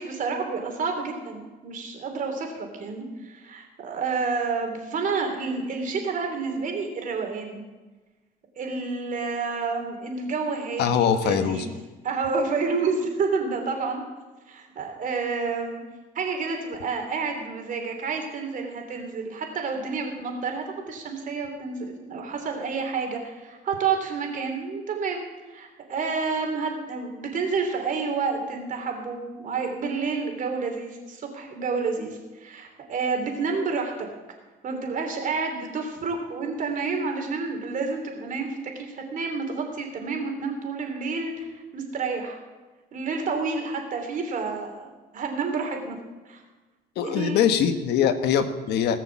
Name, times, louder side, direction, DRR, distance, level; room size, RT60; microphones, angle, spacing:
voice 1, 0.0-7.6 8.6-11.7 12.0-14.0 14.5-15.8 16.1-34.1 34.6-41.5 41.7-42.4 42.9-46.0 46.3-46.4 47.0-47.4, right 4 dB, 50° right, 3 dB, 3.1 m, -29 dB
voice 2, 10.8-11.6 47.0-49.0, left 8 dB, 80° left, 9 dB, 1.2 m, -22 dB
18.5 x 6.6 x 7.1 m, 1.2 s
cardioid pair, 110°, 17 cm